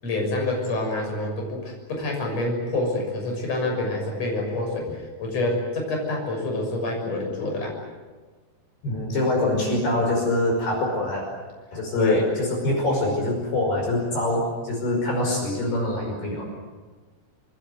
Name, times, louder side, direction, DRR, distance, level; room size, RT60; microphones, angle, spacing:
voice 1, 0.0-7.8 12.0-12.2, left 2 dB, 35° left, 0 dB, 7.4 m, -27 dB
voice 2, 8.8-11.3 11.7-16.4, left 1 dB, 60° left, 1 dB, 7.3 m, -24 dB
28.0 x 20.5 x 9.5 m, 1.4 s
omnidirectional pair, 5.4 m